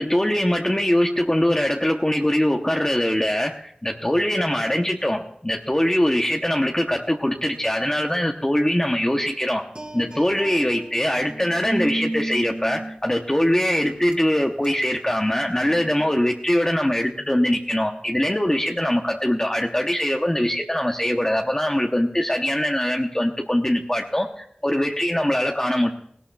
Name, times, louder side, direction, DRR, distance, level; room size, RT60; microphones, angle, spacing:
voice 1, 0.0-9.6 9.9-25.9, left 1 dB, 20° left, 2 dB, 0.8 m, -22 dB
sound 1, 9.8-13.4 13.9-14.1 14.6-14.9 15.7-16.0, right 1 dB, 35° right, 2.2 m, -32 dB
17.5 x 17.5 x 2.3 m, 0.68 s
wide cardioid pair, 45°, 3 cm